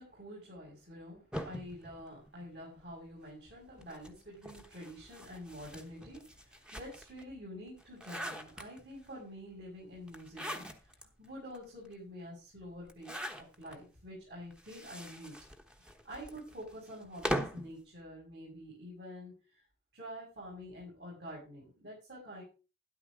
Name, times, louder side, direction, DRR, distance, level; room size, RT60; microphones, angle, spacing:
voice 1, 0.0-15.3 15.8-19.6 19.9-22.4, equal, 60° right, -4 dB, 6.8 m, -48 dB
sound 1, 1.3-2.9 3.8-7.2 7.7-9.1 10.1-11.0 11.5-11.6 11.8-11.9 12.8-13.8 14.5-17.7, equal, 5° right, 1.1 m, -41 dB
12.5 x 11.0 x 3.7 m, 0.32 s
head